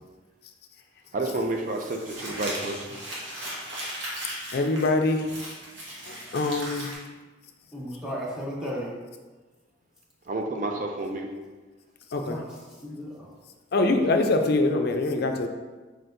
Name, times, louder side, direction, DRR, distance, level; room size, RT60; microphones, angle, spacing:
voice 1, 1.1-2.9 10.3-11.3, right 2 dB, 40° right, 3 dB, 0.4 m, -30 dB
Crumpling crinkling, 1.4-6.9, right 1 dB, 65° right, 1.2 m, -37 dB
voice 2, 4.5-5.3 6.1-6.9 12.1-12.4 13.7-15.5, left 2 dB, 55° left, 5 dB, 0.4 m, -24 dB
voice 3, 7.7-8.9 12.1-13.3, equal, 5° right, -6 dB, 0.7 m, -35 dB
4.4 x 4.3 x 2.6 m, 1.3 s
head